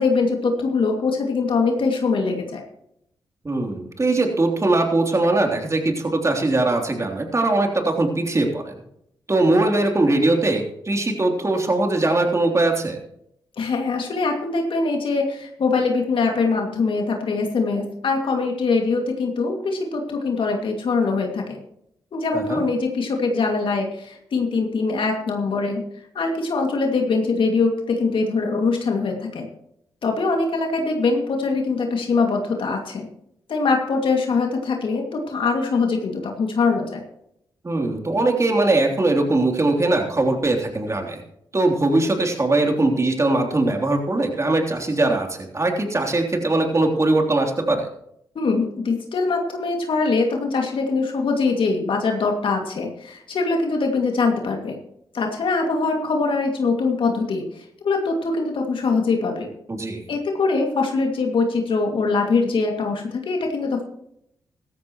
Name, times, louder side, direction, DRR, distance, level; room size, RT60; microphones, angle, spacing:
voice 1, 0.0-2.6 13.6-21.6 22.1-25.8 26.1-29.5 30.0-33.1 33.5-37.0 48.3-54.8 55.1-59.5 60.1-63.8, left 4 dB, 65° left, 2 dB, 2.4 m, -23 dB
voice 2, 3.4-8.7 9.3-13.0 22.3-22.6 37.6-41.2 41.5-47.9 59.7-60.0, right 2 dB, 30° right, 3 dB, 3.4 m, -21 dB
15.5 x 13.5 x 3.1 m, 0.74 s
supercardioid pair, 50°, 9 cm